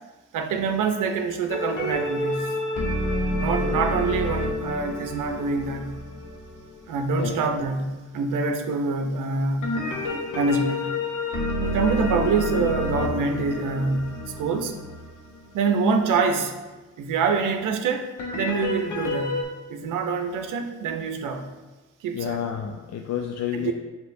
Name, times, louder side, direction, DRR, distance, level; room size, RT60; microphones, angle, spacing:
voice 1, 0.3-2.5 3.4-5.9 6.9-10.9 11.6-14.7 15.5-16.5 17.0-19.4 19.7-21.5 22.0-22.4 23.5-23.7, right 4 dB, 70° right, 6 dB, 0.6 m, -25 dB
sound 1, 1.5-7.2 9.6-15.5 18.2-19.4, left 1 dB, 70° left, 0.9 m, -29 dB
voice 2, 22.1-23.7, left 9 dB, 55° left, 3 dB, 0.4 m, -29 dB
5.6 x 2.9 x 2.6 m, 1.2 s
supercardioid pair, 60°, 32 cm